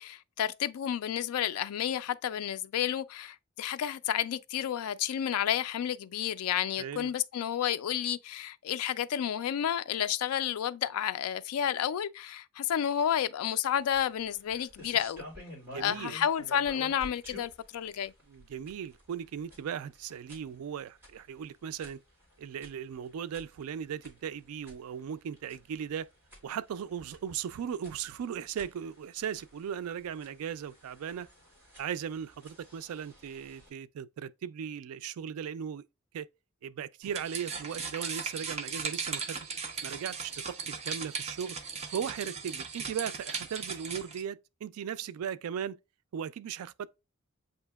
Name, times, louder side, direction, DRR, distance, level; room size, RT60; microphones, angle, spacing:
voice 1, 0.0-15.2 15.7-18.1, left 9 dB, 75° left, 0.3 m, -31 dB
voice 2, 6.8-7.1 15.6-16.2 18.3-22.0 22.4-26.1 26.4-31.3 31.8-35.8 36.1-36.3 36.6-39.5 39.8-41.6 41.9-45.8 46.1-46.9, right 8 dB, 75° right, 0.3 m, -37 dB
sound 1, 13.8-33.7, left 1 dB, 10° right, 2.3 m, -52 dB
sound 2, 37.0-44.2, right 5 dB, 30° right, 0.6 m, -37 dB
7.8 x 2.8 x 2.2 m
head